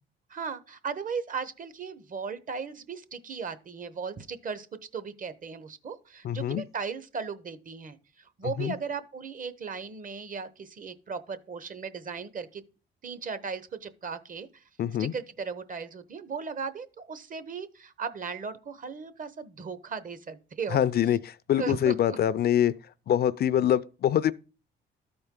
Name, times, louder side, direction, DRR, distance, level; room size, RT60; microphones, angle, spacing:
voice 1, 0.3-4.7 4.9-12.6 13.0-14.6 15.0-20.8 21.6-22.2, right 5 dB, 45° right, 0.9 m, -37 dB
voice 2, 6.2-6.6 8.4-8.7 14.8-15.1 20.7-22.7 23.1-24.3, left 10 dB, 55° left, 0.4 m, -25 dB
13.0 x 4.4 x 3.7 m
cardioid pair, 90°, 20 cm